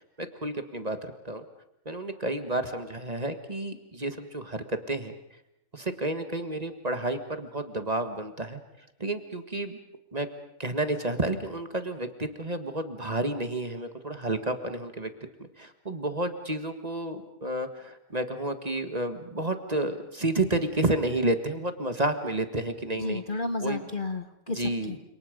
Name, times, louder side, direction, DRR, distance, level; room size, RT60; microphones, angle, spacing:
voice 1, 0.0-1.4 1.9-5.1 5.7-8.6 9.0-9.8 10.1-10.3 10.6-15.1 15.4-23.2 23.6-23.8 24.5-24.9, right 2 dB, 30° right, 8 dB, 1.7 m, -30 dB
voice 2, 23.0-25.0, left 3 dB, 40° left, 8 dB, 1.2 m, -32 dB
29.5 x 27.0 x 5.2 m, 0.83 s
omnidirectional pair, 1.5 m